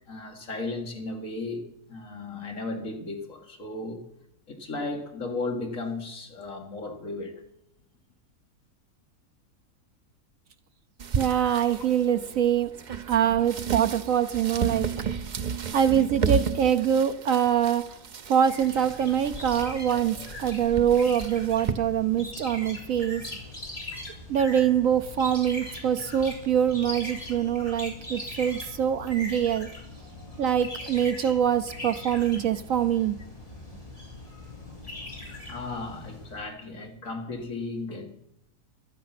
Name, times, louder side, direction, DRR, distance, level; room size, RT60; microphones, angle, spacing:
voice 1, 0.1-4.0 4.5-7.3 18.8-18.9 35.5-38.1, left 3 dB, 55° left, 3 dB, 2.4 m, -35 dB
sound 1, 11.0-21.7, right 6 dB, 50° right, 0.5 m, -33 dB
voice 2, 11.2-12.7 13.1-14.9 15.7-18.0 18.3-23.2 24.3-29.7 30.4-33.2, right 9 dB, 65° right, 11 dB, 1.0 m, -24 dB
sound 2, 18.4-36.4, left 1 dB, 20° left, 3.7 m, -41 dB
15.0 x 12.5 x 6.0 m, 0.82 s
omnidirectional pair, 1.7 m